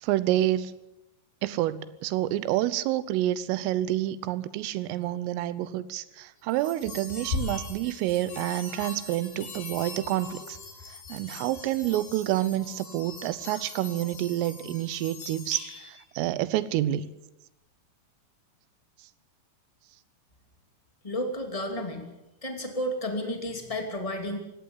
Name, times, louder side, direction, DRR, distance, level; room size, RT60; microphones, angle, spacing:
voice 1, 0.0-0.8 1.4-10.6 10.9-17.1, right 14 dB, 85° right, 16 dB, 3.5 m, -28 dB
sound 1, 6.5-16.0, left 4 dB, 50° left, 5.9 m, -40 dB
voice 2, 21.0-22.1 22.4-24.4, left 1 dB, 20° left, 3 dB, 1.0 m, -32 dB
20.0 x 17.0 x 8.5 m, 0.95 s
omnidirectional pair, 5.7 m